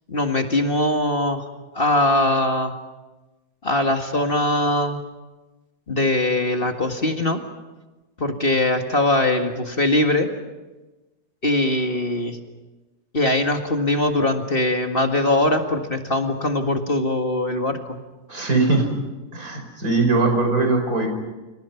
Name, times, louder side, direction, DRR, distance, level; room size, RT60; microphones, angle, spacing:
voice 1, 0.1-1.4 1.7-2.7 3.6-5.0 5.9-7.4 8.2-10.3 11.4-12.4 13.1-18.0, left 1 dB, 35° left, 4 dB, 2.1 m, -21 dB
voice 2, 18.3-18.9 19.3-21.1, right 3 dB, 65° right, 4 dB, 5.7 m, -20 dB
29.0 x 27.5 x 5.8 m, 1.1 s
omnidirectional pair, 1.6 m